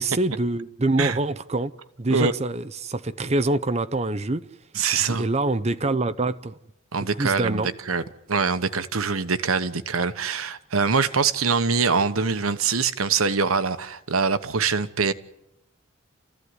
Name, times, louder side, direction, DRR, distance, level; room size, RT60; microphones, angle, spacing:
voice 1, 0.0-1.7 2.0-4.5 5.0-6.5 7.2-7.7, right 2 dB, 30° right, 0.8 m, -25 dB
voice 2, 4.7-5.3 6.9-8.0 8.3-15.1, right 5 dB, 85° right, 1.2 m, -24 dB
29.0 x 15.0 x 9.6 m
head